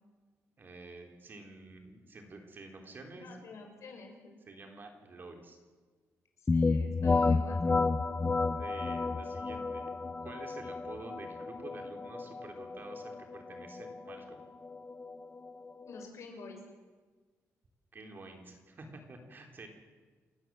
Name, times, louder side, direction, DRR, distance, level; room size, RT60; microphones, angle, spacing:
voice 1, 0.6-3.3 4.5-5.6 8.5-10.0 10.2-14.5 17.9-19.9, right 2 dB, 40° right, 3 dB, 3.8 m, -49 dB
voice 2, 3.1-4.4 6.4-7.8 15.8-16.6, left 3 dB, 70° left, 3 dB, 6.2 m, -48 dB
sound 1, 6.5-16.1, left 3 dB, 25° left, 0.7 m, -32 dB
29.0 x 15.5 x 7.7 m, 1.4 s
cardioid pair, 130°, 5 cm